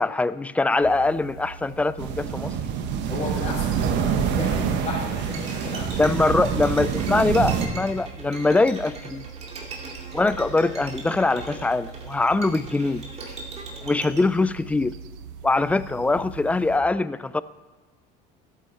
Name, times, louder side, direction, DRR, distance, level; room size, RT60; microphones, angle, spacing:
voice 1, 0.0-2.5 6.0-9.3 10.1-13.0 13.8-15.0 15.4-17.4, left 3 dB, 5° left, 17 dB, 0.3 m, -23 dB
sound 1, 0.8-16.8, right 6 dB, 85° right, 0.8 m, -42 dB
sound 2, 2.0-7.7, right 8 dB, 70° right, 1.2 m, -26 dB
voice 2, 3.1-6.6, left 2 dB, 30° left, -6 dB, 3.9 m, -33 dB
Bowed string instrument, 5.3-14.2, right 3 dB, 35° right, 2.4 m, -39 dB
13.0 x 8.2 x 4.3 m, 1.3 s
supercardioid pair, 110°, 19 cm